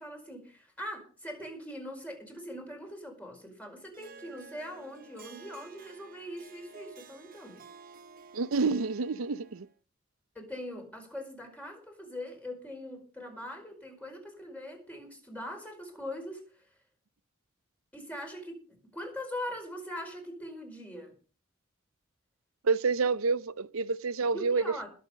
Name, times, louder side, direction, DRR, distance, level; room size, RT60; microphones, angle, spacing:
voice 1, 0.0-7.6 10.3-16.7 17.9-21.1 24.3-24.9, left 1 dB, 5° left, 4.9 m, -42 dB
Harp, 3.9-9.8, right 5 dB, 45° right, 1.0 m, -52 dB
voice 2, 8.3-9.7 22.6-24.6, right 4 dB, 80° right, 0.6 m, -28 dB
20.5 x 7.7 x 5.2 m
head